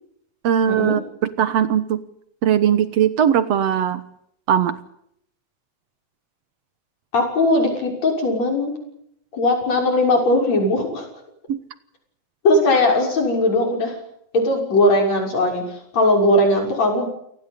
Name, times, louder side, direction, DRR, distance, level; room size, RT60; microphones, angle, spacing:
voice 1, 0.4-2.0 2.4-4.0 4.5-4.8 11.5-11.6, right 9 dB, 65° right, 13 dB, 2.1 m, -19 dB
voice 2, 7.1-8.8 9.3-11.1 12.4-14.0 14.3-17.1, left 1 dB, 60° left, 2 dB, 7.6 m, -19 dB
29.0 x 18.0 x 8.4 m, 0.73 s
omnidirectional pair, 3.5 m